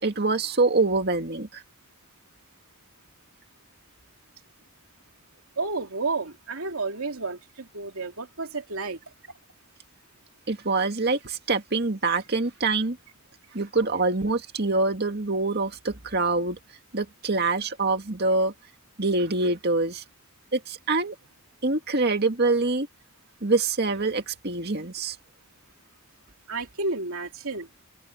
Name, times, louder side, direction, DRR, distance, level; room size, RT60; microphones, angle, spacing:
voice 1, 0.0-1.6 10.5-13.0 13.5-16.6 16.9-18.5 19.0-20.0 20.5-21.2 21.6-22.9 23.4-25.2, right 3 dB, 50° right, 2.1 m, -25 dB
voice 2, 5.6-9.0 26.5-27.7, right 3 dB, 75° right, 2.8 m, -31 dB
head